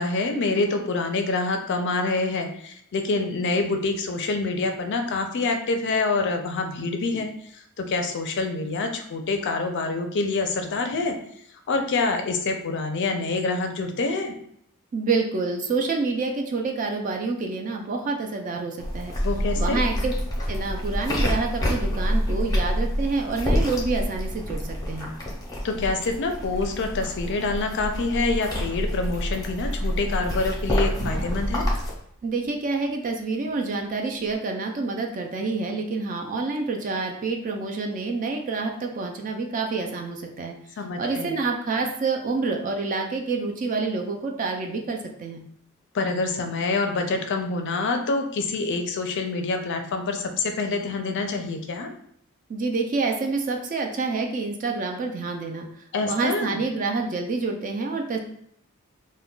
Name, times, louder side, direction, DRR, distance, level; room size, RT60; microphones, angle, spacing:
voice 1, 0.0-11.2 11.7-14.3 19.2-19.8 25.6-31.6 40.8-41.3 45.9-51.9 55.9-56.6, left 3 dB, 55° left, 5 dB, 0.4 m, -26 dB
voice 2, 14.9-19.2 19.5-20.1 20.5-25.1 32.2-40.6 41.0-45.4 52.5-55.7 56.0-58.2, right 3 dB, 40° right, 3 dB, 0.3 m, -27 dB
sound 1, 18.8-31.9, equal, 15° left, 0.6 m, -27 dB
sound 2, 30.7-33.1 33.5-33.6 33.9-34.3, equal, 75° right, 0.9 m, -36 dB
2.3 x 2.1 x 3.7 m, 0.69 s
head